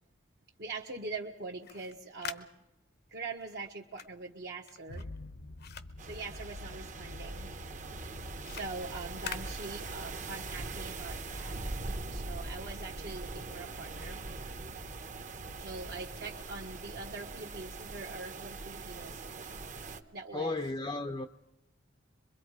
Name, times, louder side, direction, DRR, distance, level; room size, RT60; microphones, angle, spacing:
voice 1, 0.6-2.5 3.1-5.1 6.0-7.5 8.5-11.6 12.1-14.2 15.6-19.2 20.1-20.6, right 3 dB, 55° right, 1.3 m, -43 dB
sound 1, 1.5-7.0 7.3-10.3, left 8 dB, 55° left, 0.9 m, -47 dB
sound 2, 4.9-16.1, left 2 dB, 85° left, 1.0 m, -49 dB
sound 3, 6.0-20.0, right 3 dB, 40° right, 1.1 m, -42 dB
voice 2, 20.3-21.3, left 2 dB, 25° left, 0.7 m, -34 dB
24.5 x 22.5 x 4.9 m
head